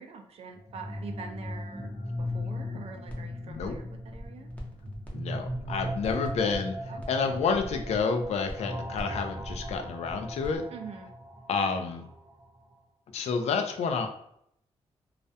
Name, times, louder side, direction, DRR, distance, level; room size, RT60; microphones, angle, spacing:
voice 1, 0.0-1.9 2.2-4.5 6.9-7.3 10.7-11.1, right 5 dB, 70° right, 5 dB, 0.4 m, -45 dB
sound 1, 0.5-12.4, equal, 35° right, 0.7 m, -38 dB
sound 2, 3.1-3.2 3.5-5.1 5.4-10.6, equal, 15° left, 0.6 m, -43 dB
voice 2, 5.1-10.7 11.5-12.0 13.1-14.1, left 5 dB, 80° left, 5 dB, 0.4 m, -29 dB
2.3 x 2.1 x 2.6 m, 0.72 s
cardioid pair, 105°, 11 cm